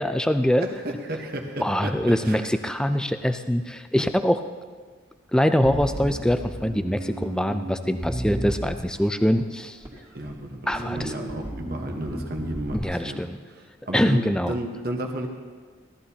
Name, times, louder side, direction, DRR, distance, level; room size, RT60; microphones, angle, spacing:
voice 1, 0.0-0.7 1.6-4.4 5.3-9.8 10.7-11.1 12.7-13.4 13.9-14.5, equal, 5° left, 8 dB, 0.4 m, -23 dB
voice 2, 0.6-2.5 10.1-13.2 13.5-15.3, right 1 dB, 50° right, 3 dB, 1.1 m, -33 dB
Bass guitar, 5.6-9.2 9.8-10.4 10.7-12.8, right 1 dB, 15° right, 1.9 m, -33 dB
17.5 x 13.5 x 2.8 m, 1.5 s
head